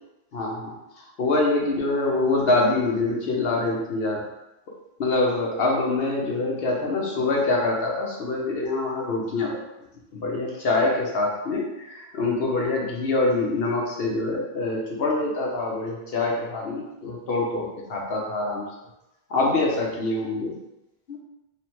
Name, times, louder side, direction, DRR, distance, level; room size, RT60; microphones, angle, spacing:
voice 1, 0.3-4.2 5.0-9.6 10.1-18.7 19.3-20.5 21.1-21.2, left 2 dB, 70° left, -1 dB, 1.0 m, -25 dB
3.2 x 3.1 x 3.0 m, 0.93 s
omnidirectional pair, 1.0 m